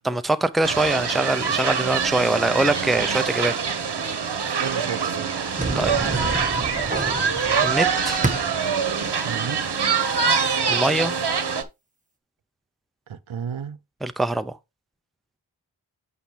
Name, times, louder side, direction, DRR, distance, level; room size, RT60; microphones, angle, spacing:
voice 1, 0.0-3.5 5.8-6.0 7.6-8.2 10.7-11.2 14.0-14.6, right 2 dB, ahead, 0.6 m, -23 dB
sound 1, 0.6-11.6, right 6 dB, 55° right, 1.2 m, -24 dB
voice 2, 4.6-5.7 6.0-6.3 9.2-9.6 13.1-13.8, right 7 dB, 75° right, 0.9 m, -33 dB
sound 2, 5.5-8.8, right 2 dB, 15° right, 1.6 m, -29 dB
8.4 x 5.5 x 3.3 m
cardioid pair, 50°, 48 cm